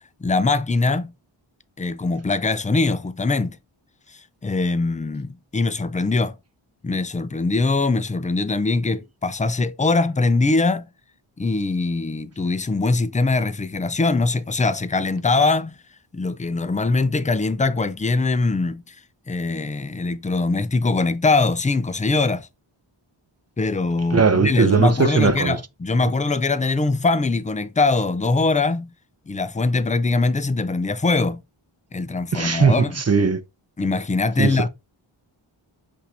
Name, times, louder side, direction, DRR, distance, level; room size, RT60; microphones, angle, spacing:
voice 1, 0.2-1.1 1.8-3.6 4.4-6.3 6.8-10.9 11.4-15.8 16.1-18.9 19.3-22.5 23.6-28.9 29.3-31.4 31.9-33.0 33.8-34.7, left 3 dB, 15° left, 0.4 m, -22 dB
voice 2, 24.1-25.6 32.3-33.4 34.4-34.7, right 5 dB, 30° right, 0.5 m, -19 dB
5.5 x 2.7 x 3.3 m
wide cardioid pair, 45°, 50 cm